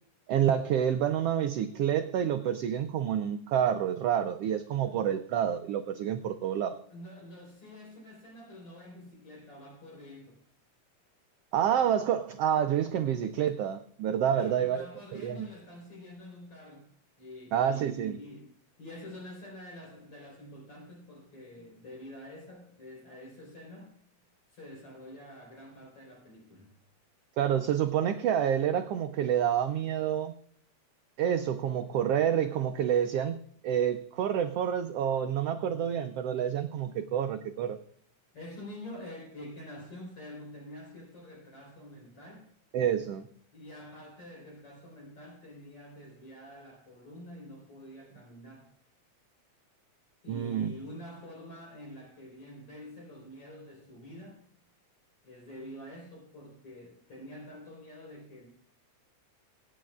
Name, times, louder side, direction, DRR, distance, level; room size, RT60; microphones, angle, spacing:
voice 1, 0.3-6.8 11.5-14.9 15.1-15.5 17.5-18.2 27.4-30.3 31.2-33.4 33.6-37.8 42.7-43.3 50.3-50.7, right 9 dB, 90° right, 8 dB, 1.3 m, -28 dB
voice 2, 6.9-10.4 14.3-16.8 17.2-18.5 18.8-23.9 24.5-26.7 38.3-42.4 43.5-48.7 50.2-54.4 55.2-58.5, left 1 dB, 50° left, -3 dB, 5.0 m, -47 dB
23.5 x 9.3 x 2.4 m, 0.64 s
omnidirectional pair, 3.4 m